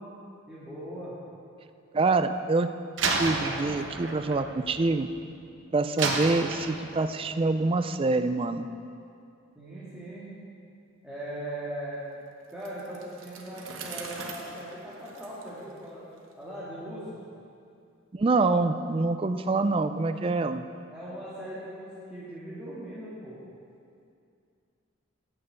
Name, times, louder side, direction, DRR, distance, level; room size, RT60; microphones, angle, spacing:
voice 1, 0.5-1.1 5.7-6.1 9.6-10.3 11.0-12.1 12.5-16.0 16.4-17.2 20.9-23.4, right 1 dB, 5° right, -11 dB, 1.9 m, -39 dB
voice 2, 1.9-2.7 3.1-5.1 5.7-8.7 18.1-20.6, right 3 dB, 25° right, 10 dB, 0.4 m, -26 dB
Slam, 3.0-5.4 6.0-7.2, right 3 dB, 65° right, 1.0 m, -31 dB
Bicycle, 12.5-16.3, right 4 dB, 90° right, 1.2 m, -43 dB
8.9 x 6.5 x 8.0 m, 2.5 s
head